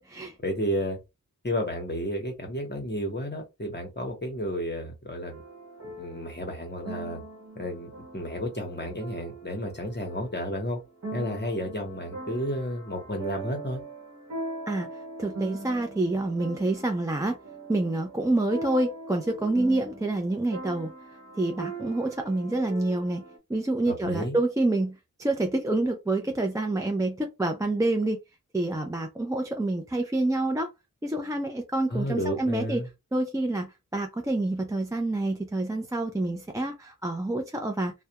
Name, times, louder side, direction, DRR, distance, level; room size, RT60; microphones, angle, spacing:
voice 1, 0.4-1.0 1.4-5.4 6.0-7.2 7.6-10.8 11.1-13.8 23.9-24.4 31.9-32.9, equal, 30° left, 0.9 m, -32 dB
sound 1, 5.3-23.4, right 2 dB, 55° right, 1.0 m, -41 dB
voice 2, 15.2-17.4 17.7-20.9 21.4-23.2 23.5-28.2 28.5-30.7 31.0-32.8 33.1-37.9, right 2 dB, 10° right, 0.4 m, -27 dB
2.3 x 2.1 x 2.8 m
wide cardioid pair, 55°, 34 cm